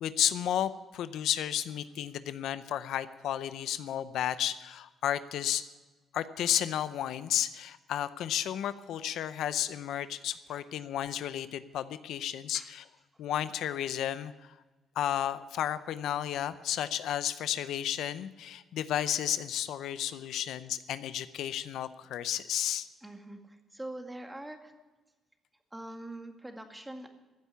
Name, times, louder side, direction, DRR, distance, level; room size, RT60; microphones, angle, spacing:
voice 1, 0.0-5.6 6.1-12.8 13.2-14.3 15.0-22.9, left 11 dB, 80° left, 13 dB, 0.6 m, -32 dB
voice 2, 23.0-24.7 25.7-27.1, right 1 dB, 10° right, 5 dB, 2.0 m, -43 dB
15.0 x 8.2 x 9.7 m, 1.2 s
cardioid pair, 90°, 0 cm